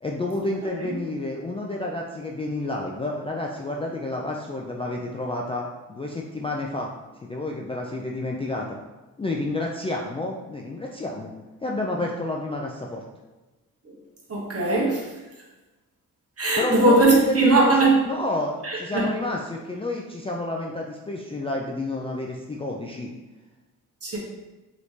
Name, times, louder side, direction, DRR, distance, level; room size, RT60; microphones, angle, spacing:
voice 1, 0.0-6.9 7.2-8.7 9.2-11.3 11.6-13.0 16.6-23.1, left 2 dB, 15° left, -2 dB, 0.4 m, -30 dB
voice 2, 14.3-15.0 16.4-17.9 18.6-19.1 24.0-24.2, right 2 dB, 40° right, -3 dB, 1.2 m, -19 dB
3.1 x 3.0 x 2.7 m, 1.1 s
supercardioid pair, 55°, 36 cm